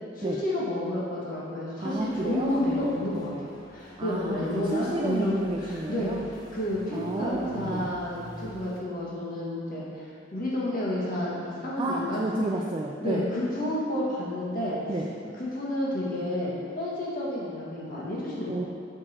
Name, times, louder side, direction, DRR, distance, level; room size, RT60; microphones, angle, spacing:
voice 1, 0.1-6.1 6.5-12.5 13.0-14.8 15.4-18.5, left 1 dB, 45° left, -6 dB, 1.5 m, -30 dB
voice 2, 1.8-2.8 4.0-6.2 6.9-7.9 11.8-13.2 14.9-15.1 18.5-18.6, right 2 dB, 25° right, -1 dB, 0.3 m, -31 dB
sound 1, 1.9-8.8, equal, 20° left, 0.6 m, -47 dB
6.3 x 4.7 x 4.3 m, 2.3 s
head